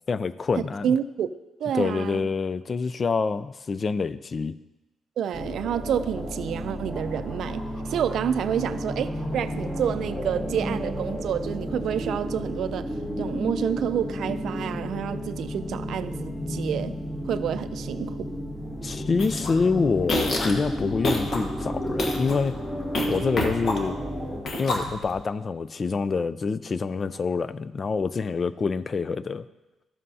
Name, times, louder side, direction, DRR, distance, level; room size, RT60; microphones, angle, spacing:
voice 1, 0.1-0.9 1.7-4.6 18.8-22.6 23.0-24.0 24.6-29.5, left 4 dB, 40° left, 15 dB, 0.3 m, -26 dB
voice 2, 0.8-1.3 1.6-2.2 5.2-12.9 13.2-17.0 17.3-18.3, right 9 dB, 70° right, 12 dB, 0.4 m, -29 dB
sound 1, 5.3-24.4, equal, 20° left, 1.9 m, -32 dB
sound 2, 19.2-19.5 20.0-20.6 21.0-21.4 21.9-22.3 23.0-24.0 24.5-25.2, left 2 dB, 55° left, 1.2 m, -27 dB
13.0 x 7.5 x 2.8 m, 1.0 s
cardioid pair, 90°, 0 cm